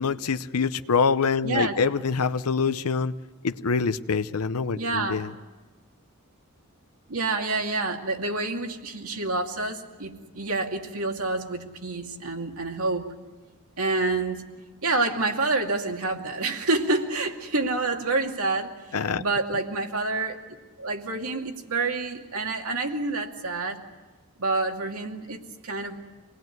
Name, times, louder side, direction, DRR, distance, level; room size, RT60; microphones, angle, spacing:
voice 1, 0.0-3.1 3.4-5.3 18.9-19.2, left 5 dB, 85° left, 12 dB, 0.7 m, -25 dB
voice 2, 1.4-1.8 4.7-5.2 7.1-13.1 13.8-14.4 14.8-20.4 20.8-23.8 24.4-26.0, right 3 dB, 75° right, 3 dB, 2.4 m, -28 dB
27.0 x 19.5 x 9.3 m, 1.3 s
head